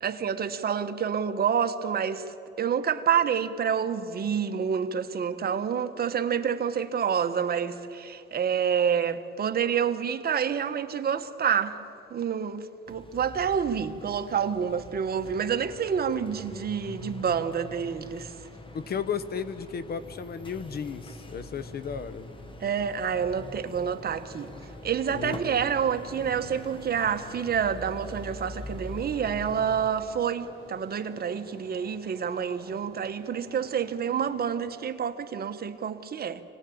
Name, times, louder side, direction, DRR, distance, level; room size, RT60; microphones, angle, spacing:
voice 1, 0.0-11.8 12.1-18.3 22.6-24.5 24.8-36.4, right 7 dB, 50° right, 1.4 m, -28 dB
sound 1, 12.9-29.9, left 1 dB, 25° left, 1.9 m, -44 dB
sound 2, 18.4-34.5, left 1 dB, 75° left, 7.7 m, -51 dB
voice 2, 18.7-22.3 25.1-25.6, left 7 dB, 50° left, 1.2 m, -34 dB
25.0 x 19.0 x 8.8 m
cardioid pair, 90°, 20 cm